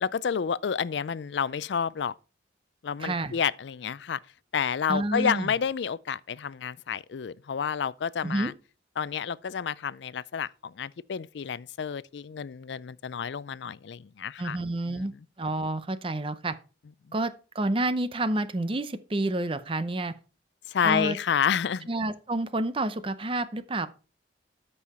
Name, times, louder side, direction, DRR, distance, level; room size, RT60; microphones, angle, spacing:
voice 1, 0.0-2.1 2.8-4.2 4.5-8.5 9.0-14.6 14.9-15.1 17.1-17.2 20.7-21.9, left 7 dB, 75° left, 0.4 m, -30 dB
voice 2, 3.0-3.3 4.9-5.5 8.2-8.5 14.4-15.1 15.4-16.6 17.1-20.1 20.8-21.2 21.9-23.9, right 2 dB, 30° right, 0.7 m, -29 dB
13.0 x 5.5 x 4.3 m
head